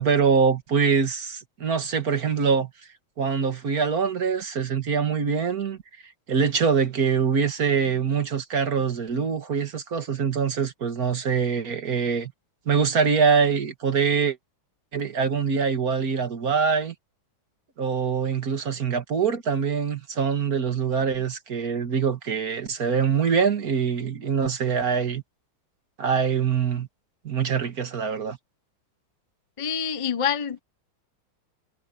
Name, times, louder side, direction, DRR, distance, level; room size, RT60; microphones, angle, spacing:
voice 1, 0.0-2.7 3.2-5.8 6.3-12.3 12.7-14.4 14.9-16.9 17.8-25.2 26.0-26.9 27.2-28.4, right 6 dB, 45° right, 2.2 m, -24 dB
voice 2, 29.6-30.6, left 7 dB, 30° left, 0.6 m, -26 dB
omnidirectional pair, 2.2 m